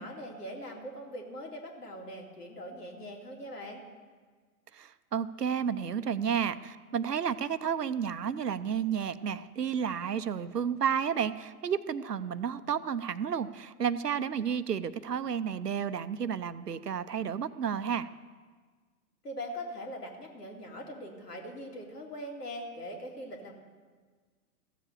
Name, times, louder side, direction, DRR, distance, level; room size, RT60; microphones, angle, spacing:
voice 1, 0.0-3.8 19.2-23.5, equal, 75° left, 1 dB, 2.6 m, -41 dB
voice 2, 4.7-18.1, right 7 dB, 80° right, 14 dB, 0.7 m, -31 dB
14.5 x 7.6 x 6.7 m, 1.5 s
figure-of-eight pair, 105°, 47 cm